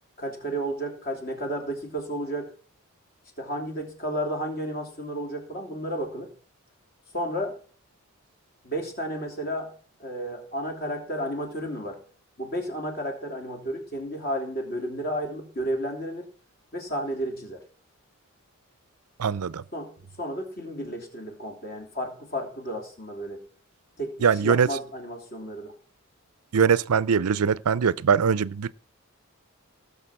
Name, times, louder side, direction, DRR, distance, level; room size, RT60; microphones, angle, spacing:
voice 1, 0.2-2.5 3.4-6.3 7.1-7.6 8.6-9.7 10.0-12.0 12.4-16.2 16.7-17.6 19.7-23.4 24.0-24.1 24.4-25.7, equal, 40° left, 3.2 m, -32 dB
voice 2, 19.2-19.6 24.2-24.8 26.5-28.7, right 6 dB, 85° right, 0.5 m, -22 dB
18.0 x 6.7 x 5.8 m
head